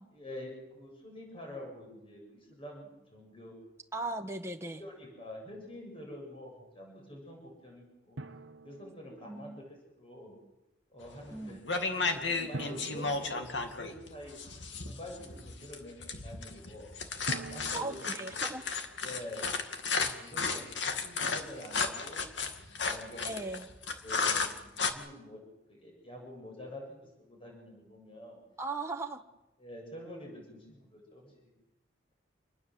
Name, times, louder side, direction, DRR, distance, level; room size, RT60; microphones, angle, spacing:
voice 1, 0.1-3.6 4.8-8.2 8.6-10.4 10.9-11.6 12.1-14.4 14.8-16.9 17.5-18.1 19.0-19.4 19.9-22.2 22.8-23.3 24.0-25.4 25.7-28.4 29.6-31.5, left 1 dB, 30° left, 1 dB, 7.5 m, -47 dB
voice 2, 3.9-4.8 9.3-9.6 11.3-11.6 17.7-18.6 23.2-23.7 28.6-29.2, right 2 dB, 15° right, 3 dB, 1.3 m, -38 dB
Drum, 8.2-9.6 12.5-14.3 17.3-18.9, right 2 dB, 75° right, 1.2 m, -45 dB
sound 1, 11.1-11.4 11.7-24.9, left 4 dB, 70° left, 2.4 m, -33 dB
28.0 x 20.5 x 7.7 m, 0.95 s
head